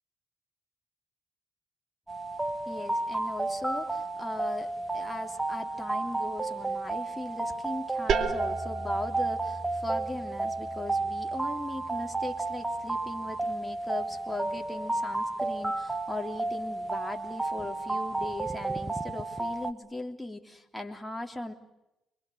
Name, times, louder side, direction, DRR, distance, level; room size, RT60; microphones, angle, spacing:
sound 1, 2.1-19.7, right 2 dB, 10° right, 1.7 m, -32 dB
voice 1, 2.7-21.5, left 2 dB, 5° left, 3 dB, 3.2 m, -39 dB
sound 2, 8.1-13.6, right 5 dB, 65° right, 2.7 m, -36 dB
26.0 x 23.5 x 7.9 m, 0.90 s
cardioid pair, 90°, 0 cm